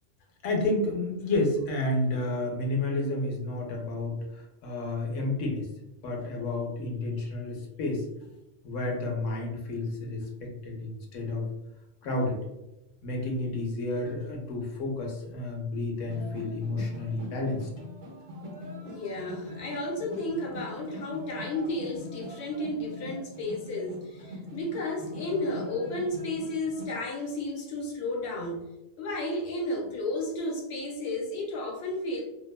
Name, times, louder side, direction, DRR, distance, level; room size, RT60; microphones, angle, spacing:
voice 1, 0.4-5.7 6.0-8.1 8.6-11.5 12.0-12.4 13.0-17.7, left 2 dB, 85° left, 1 dB, 1.0 m, -30 dB
sound 1, 16.1-26.9, left 1 dB, 70° right, 1.1 m, -43 dB
voice 2, 18.8-28.7 29.0-32.2, left 1 dB, 65° left, -2 dB, 0.9 m, -33 dB
2.7 x 2.1 x 2.2 m, 0.93 s
omnidirectional pair, 1.3 m